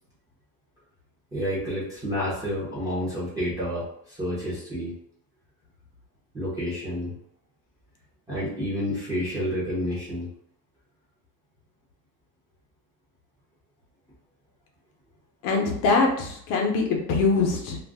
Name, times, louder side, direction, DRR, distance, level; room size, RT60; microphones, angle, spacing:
voice 1, 1.3-4.9 6.3-7.1 8.3-10.3, equal, 10° right, -10 dB, 0.6 m, -29 dB
voice 2, 15.4-17.8, left 4 dB, 60° left, 1 dB, 0.8 m, -23 dB
2.5 x 2.0 x 3.4 m, 0.70 s
cardioid pair, 165°, 49 cm